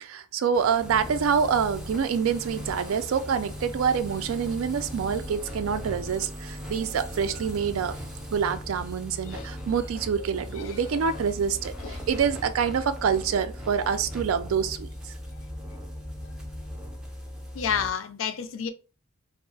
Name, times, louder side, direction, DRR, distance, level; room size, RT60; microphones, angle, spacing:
voice 1, 0.0-8.0 8.3-15.1, right 7 dB, 80° right, 0.3 m, -26 dB
sound 1, 0.5-17.9, equal, 5° right, 0.4 m, -38 dB
voice 2, 17.5-18.7, left 7 dB, 65° left, 0.4 m, -31 dB
2.3 x 2.0 x 3.7 m
head